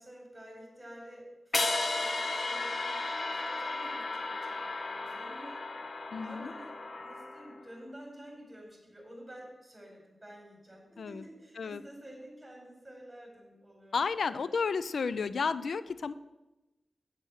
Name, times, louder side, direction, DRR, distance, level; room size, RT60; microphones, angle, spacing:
voice 1, 0.0-5.7 6.2-14.5, equal, 15° right, 0 dB, 4.4 m, -50 dB
sound 1, 1.5-7.7, left 2 dB, 55° left, 1.0 m, -34 dB
voice 2, 6.1-6.5 11.0-11.2 11.6-11.8 13.9-16.1, left 5 dB, 80° left, 15 dB, 0.3 m, -32 dB
8.7 x 7.6 x 6.3 m, 1.0 s
cardioid pair, 60°, 0 cm